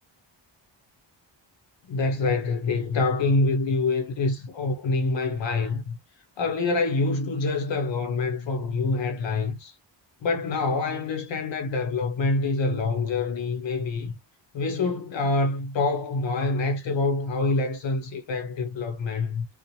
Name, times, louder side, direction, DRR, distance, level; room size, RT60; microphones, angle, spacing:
voice 1, 1.9-6.0 6.4-9.8 10.2-14.1 14.5-19.5, left 3 dB, 70° left, 0.7 m, -26 dB
2.9 x 2.0 x 2.5 m
wide cardioid pair, 165°, 47 cm